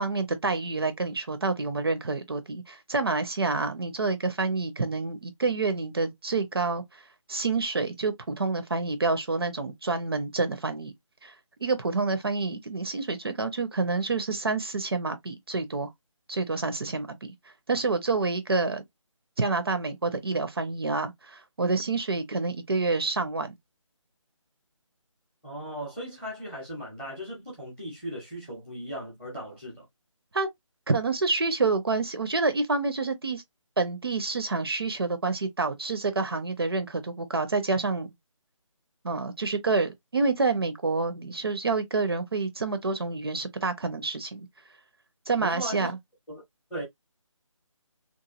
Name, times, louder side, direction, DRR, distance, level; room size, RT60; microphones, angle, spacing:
voice 1, 0.0-7.0 7.3-10.9 11.2-11.3 11.6-15.9 16.3-17.3 17.7-18.8 19.4-23.6 30.3-30.5 30.9-33.4 33.8-38.1 39.0-44.5 45.3-46.0, right 3 dB, 50° right, 0.5 m, -28 dB
voice 2, 25.4-29.8 45.4-45.9 46.3-46.4 46.7-46.8, equal, 5° left, 0.6 m, -37 dB
2.9 x 2.3 x 2.3 m
figure-of-eight pair, 155°, 17 cm